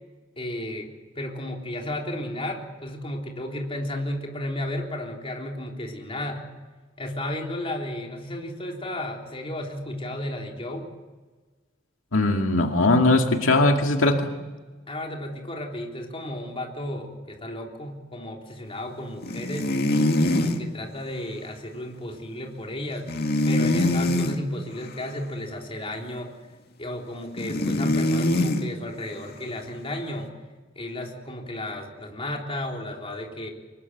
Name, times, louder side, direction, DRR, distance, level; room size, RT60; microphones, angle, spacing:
voice 1, 0.4-0.9 1.2-6.5 7.0-10.9 14.9-19.7 20.2-23.1 23.4-26.3 26.8-30.3 30.8-33.5, left 1 dB, 30° left, 1 dB, 3.7 m, -33 dB
voice 2, 12.1-14.3, left 2 dB, 85° left, 3 dB, 2.2 m, -20 dB
sound 1, 19.2-20.6 23.1-24.4 27.4-28.7, left 1 dB, 55° left, 2.1 m, -23 dB
25.0 x 21.0 x 8.0 m, 1.3 s
head